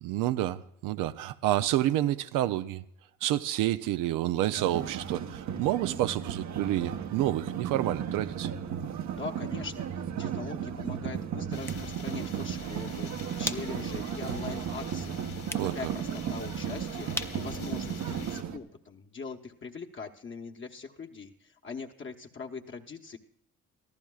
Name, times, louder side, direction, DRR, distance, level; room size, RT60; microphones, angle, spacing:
voice 1, 0.0-2.8 3.2-8.5 15.5-15.7, right 14 dB, 90° right, 0.5 m, -29 dB
sound 1, 4.6-18.6, right 8 dB, 65° right, 1.0 m, -35 dB
voice 2, 9.1-15.2 15.7-23.2, left 5 dB, 40° left, 1.1 m, -42 dB
sound 2, 11.5-18.4, left 6 dB, 75° left, 3.1 m, -45 dB
sound 3, 17.1-18.8, left 1 dB, 10° left, 0.7 m, -44 dB
23.5 x 14.0 x 2.4 m
supercardioid pair, 75°, 31 cm